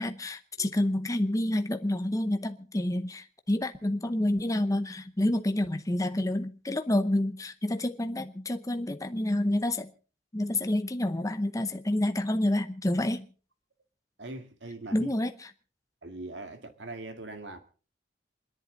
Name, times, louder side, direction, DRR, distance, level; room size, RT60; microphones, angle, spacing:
voice 1, 0.0-9.9 10.3-13.3 14.9-15.3, left 1 dB, 20° left, 0.8 m, -28 dB
voice 2, 14.2-15.1 16.0-17.6, right 2 dB, 75° right, 2.1 m, -41 dB
27.5 x 11.0 x 3.9 m
head